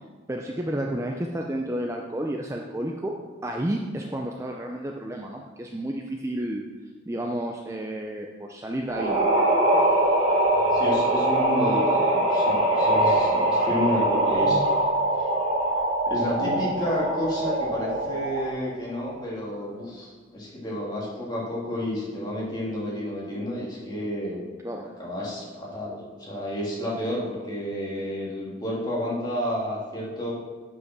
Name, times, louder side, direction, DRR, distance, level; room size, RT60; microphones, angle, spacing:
voice 1, 0.3-3.2 3.4-6.6 7.1-9.3 9.8-9.9 24.6-24.9, right 1 dB, 15° right, 1 dB, 0.5 m, -31 dB
sound 1, 8.9-18.6, right 1 dB, 35° right, 2.0 m, -23 dB
voice 2, 10.7-14.6 16.1-24.5 25.0-30.3, left 1 dB, 20° left, -6 dB, 2.5 m, -30 dB
8.2 x 5.6 x 6.0 m, 1.4 s
head